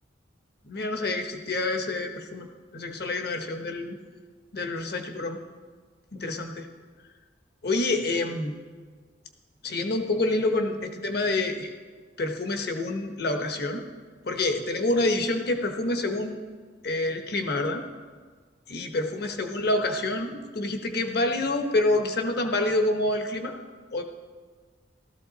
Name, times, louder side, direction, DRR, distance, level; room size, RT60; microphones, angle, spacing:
voice 1, 0.6-2.5 2.7-4.0 4.5-5.4 6.1-6.7 7.6-8.6 9.6-11.7 12.2-13.8 14.2-16.4 16.8-17.8 18.7-23.5 23.9-24.0, left 2 dB, 60° left, 5 dB, 1.2 m, -27 dB
15.5 x 13.5 x 4.1 m, 1.5 s
head